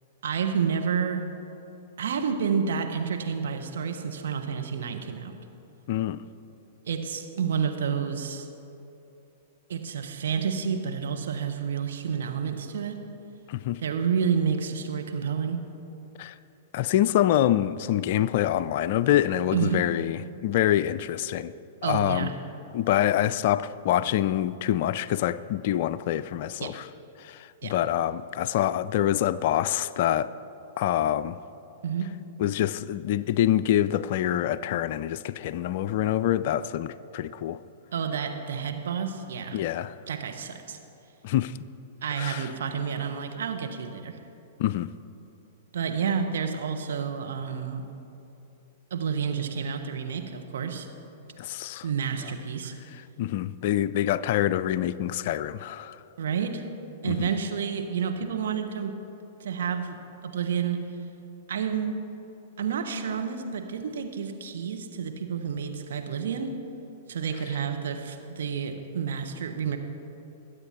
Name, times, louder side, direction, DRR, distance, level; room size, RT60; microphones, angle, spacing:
voice 1, 0.2-1.3 2.0-5.3 6.9-8.5 9.7-13.0 13.8-15.6 19.5-19.8 21.8-22.3 26.6-26.8 27.6-27.7 31.8-32.1 37.9-39.6 40.1-40.8 42.0-44.2 45.7-47.8 48.9-50.9 51.8-52.8 56.2-56.6 57.0-59.0 59.4-60.0 60.2-60.8 61.5-62.0 62.6-66.6 67.1-69.8, right 6 dB, 65° right, 1.2 m, -29 dB
voice 2, 5.9-6.2 13.5-13.8 16.2-16.4 16.7-21.5 21.8-22.3 22.7-26.9 27.2-30.3 30.8-31.4 32.4-37.6 39.5-39.9 41.2-41.6 42.2-42.5 44.6-44.9 51.4-51.9 53.2-56.0 57.0-57.3, left 12 dB, 50° left, 0.4 m, -26 dB
21.0 x 8.7 x 4.4 m
figure-of-eight pair, 105°, 0 cm